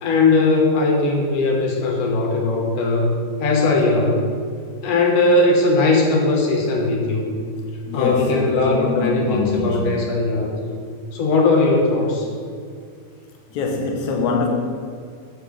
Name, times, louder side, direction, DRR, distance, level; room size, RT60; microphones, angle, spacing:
voice 1, 0.0-3.1 3.4-4.3 4.8-7.3 7.9-10.5 11.1-12.3, left 3 dB, 90° left, -1 dB, 3.0 m, -19 dB
voice 2, 7.9-10.2 13.5-14.5, left 4 dB, 75° left, 1 dB, 2.3 m, -23 dB
11.5 x 10.0 x 3.5 m, 2.2 s
omnidirectional pair, 3.5 m